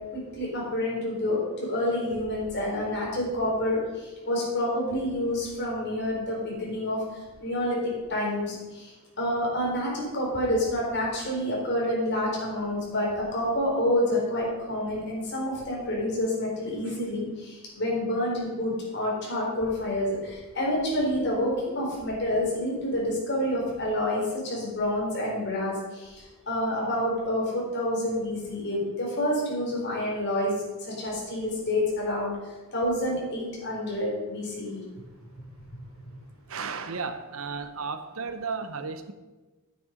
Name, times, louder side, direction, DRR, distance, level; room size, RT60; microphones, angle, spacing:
voice 1, 0.1-7.0 7.4-30.5 31.0-34.8, left 1 dB, 55° left, -4 dB, 4.2 m, -28 dB
voice 2, 36.5-39.1, right 5 dB, 80° right, 9 dB, 0.9 m, -34 dB
9.3 x 9.1 x 5.2 m, 1.2 s
head